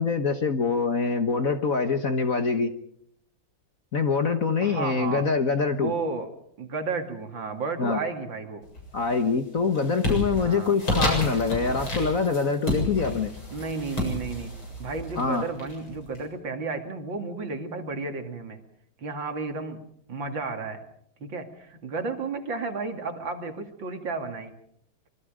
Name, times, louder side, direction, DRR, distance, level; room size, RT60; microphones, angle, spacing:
voice 1, 0.0-2.7 3.9-5.9 7.8-8.0 8.9-13.3 15.2-15.4, left 5 dB, 45° left, 8 dB, 1.5 m, -24 dB
voice 2, 4.6-5.2 5.7-6.3 6.6-8.6 10.3-10.8 13.5-14.5 14.8-18.6 19.0-19.8 20.1-20.8 21.2-24.5, right 4 dB, 60° right, 6 dB, 3.1 m, -32 dB
sound 1, 8.7-9.2 9.5-16.2, left 1 dB, 65° left, 8.4 m, -31 dB
26.0 x 23.5 x 5.1 m, 0.70 s
omnidirectional pair, 2.4 m